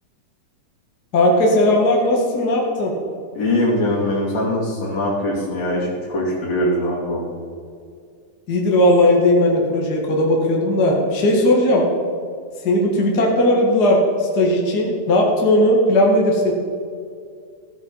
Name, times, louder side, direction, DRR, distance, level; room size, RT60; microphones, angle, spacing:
voice 1, 1.1-2.9 8.5-11.8 12.6-16.5, left 1 dB, 35° left, -1 dB, 2.0 m, -17 dB
voice 2, 3.4-7.3, left 1 dB, 60° left, -3 dB, 4.1 m, -22 dB
16.0 x 9.0 x 5.6 m, 2.3 s
omnidirectional pair, 3.4 m